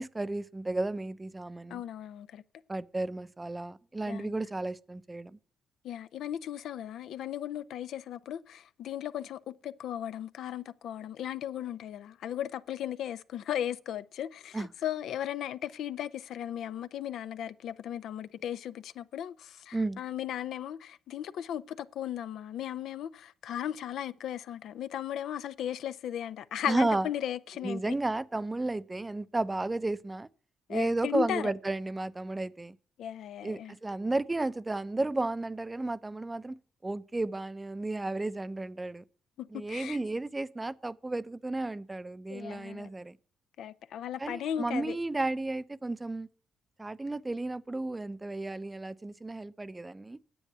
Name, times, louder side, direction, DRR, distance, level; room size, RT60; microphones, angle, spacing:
voice 1, 0.0-1.8 2.7-5.4 14.5-14.7 19.7-20.0 26.7-27.1 27.6-30.3 30.7-32.7 33.4-36.6 36.8-39.0 39.5-43.2 44.2-46.3 46.8-50.2, right 2 dB, 15° right, 0.6 m, -33 dB
voice 2, 1.7-2.4 4.1-4.4 5.8-28.0 30.7-31.5 33.0-33.7 39.4-40.0 42.3-42.9 43.6-45.0, left 10 dB, 75° left, 0.6 m, -36 dB
10.0 x 7.9 x 6.7 m
cardioid pair, 90°, 0 cm